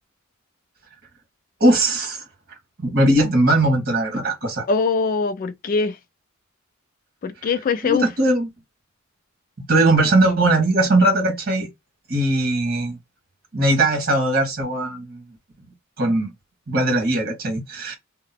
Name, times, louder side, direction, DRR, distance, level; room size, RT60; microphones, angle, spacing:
voice 1, 1.6-2.2 2.8-4.6 7.8-8.5 9.7-11.7 12.1-13.0 13.5-15.2 16.0-16.3 16.7-17.9, right 1 dB, 45° right, 1.5 m, -19 dB
voice 2, 4.7-6.0 7.2-8.0, left 4 dB, 40° left, 0.3 m, -22 dB
2.9 x 2.1 x 4.1 m
head